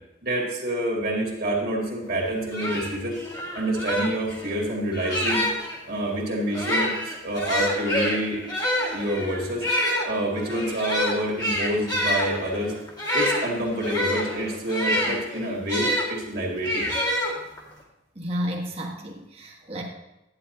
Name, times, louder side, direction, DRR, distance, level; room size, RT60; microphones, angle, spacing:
voice 1, 0.2-3.2 3.5-5.5 5.9-8.4 8.9-9.7 10.0-12.8 13.1-16.9, right 1 dB, 50° right, -1 dB, 2.3 m, -27 dB
sound 1, 2.1-2.2 2.5-5.8 6.5-16.1 16.6-17.7, equal, 20° left, 1.8 m, -27 dB
voice 2, 18.1-19.8, equal, 30° right, -1 dB, 1.5 m, -31 dB
11.0 x 9.7 x 2.8 m, 0.95 s
head